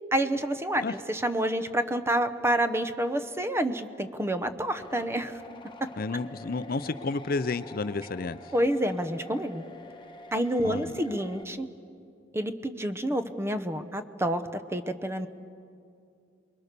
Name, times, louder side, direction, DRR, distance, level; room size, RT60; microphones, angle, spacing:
voice 1, 0.1-5.4 8.5-9.6 10.3-11.7 12.3-15.3, right 1 dB, 15° right, 10 dB, 0.9 m, -28 dB
sound 1, 4.8-11.4, left 1 dB, 25° left, 1.2 m, -47 dB
voice 2, 6.0-8.4 10.6-11.0, left 3 dB, 50° left, 13 dB, 0.6 m, -31 dB
28.0 x 22.0 x 6.8 m, 2.5 s
head